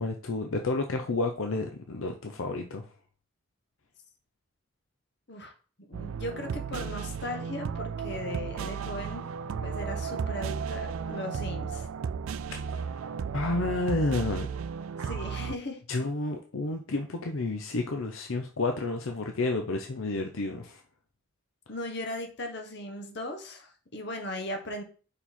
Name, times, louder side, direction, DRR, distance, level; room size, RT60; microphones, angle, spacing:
voice 1, 0.0-2.9 12.7-13.0 13.3-14.5 15.9-20.8, left 2 dB, 75° left, 4 dB, 0.7 m, -30 dB
voice 2, 5.9-9.2 9.6-11.9 15.0-15.8 21.7-24.8, left 1 dB, 55° left, 4 dB, 1.2 m, -37 dB
sound 1, 5.9-15.6, right 6 dB, 85° right, 0.4 m, -34 dB
5.3 x 4.7 x 4.3 m, 0.39 s
head